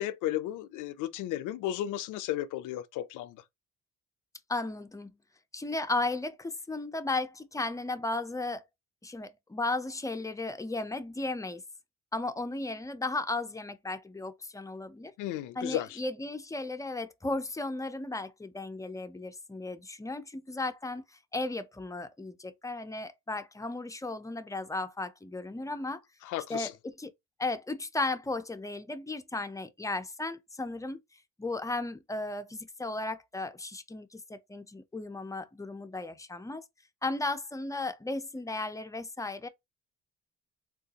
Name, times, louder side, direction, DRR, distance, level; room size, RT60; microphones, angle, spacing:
voice 1, 0.0-3.4 15.2-16.0 26.2-26.7, left 13 dB, 85° left, 0.5 m, -34 dB
voice 2, 4.5-5.1 5.5-8.6 9.0-11.6 12.1-15.1 15.6-26.0 26.5-27.1 27.4-31.0 31.4-36.7 37.0-39.5, left 2 dB, 10° left, 0.4 m, -35 dB
3.7 x 2.3 x 2.7 m
cardioid pair, 90°, 30 cm